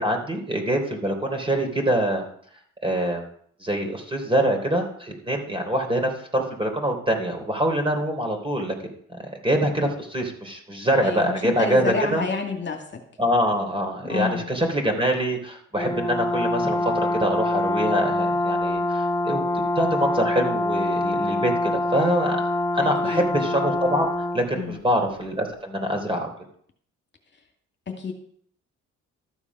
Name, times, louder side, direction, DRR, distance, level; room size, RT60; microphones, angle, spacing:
voice 1, 0.0-2.2 2.8-3.3 3.6-8.7 9.1-12.2 13.2-22.4 22.7-24.1 24.3-26.3, right 1 dB, 15° right, 3 dB, 3.4 m, -24 dB
voice 2, 11.0-13.0 14.0-14.5 23.0-23.3 24.5-24.8 27.9-28.1, left 4 dB, 35° left, 2 dB, 2.2 m, -29 dB
Brass instrument, 15.8-24.5, left 2 dB, 15° left, 0.7 m, -25 dB
13.5 x 7.1 x 6.1 m, 0.62 s
cardioid pair, 90°, 30 cm